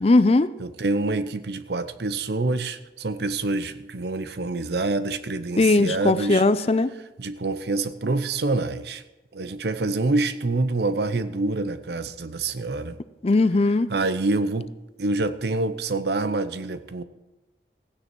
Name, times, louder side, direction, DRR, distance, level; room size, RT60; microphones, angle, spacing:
voice 1, 0.0-0.5 5.6-6.9 13.2-13.9, left 2 dB, 35° left, 14 dB, 0.4 m, -19 dB
voice 2, 0.6-6.4 7.2-9.0 9.3-13.0 13.9-14.7 15.0-17.0, right 2 dB, 70° right, 13 dB, 0.7 m, -26 dB
15.5 x 9.7 x 4.6 m, 1.0 s
head